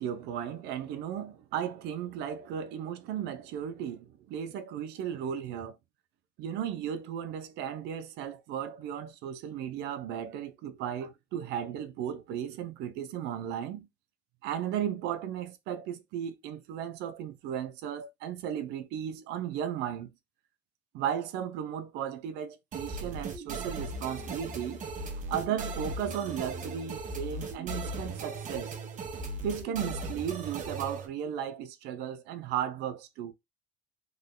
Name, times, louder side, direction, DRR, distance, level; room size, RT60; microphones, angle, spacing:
voice 1, 0.0-5.8 6.4-13.9 14.4-20.1 20.9-24.8 25.3-28.8 29.4-33.3, right 9 dB, 90° right, 0.6 m, -35 dB
sound 1, 22.7-31.1, right 2 dB, 50° right, 0.9 m, -38 dB
3.2 x 2.2 x 3.6 m
cardioid pair, 110°, 17 cm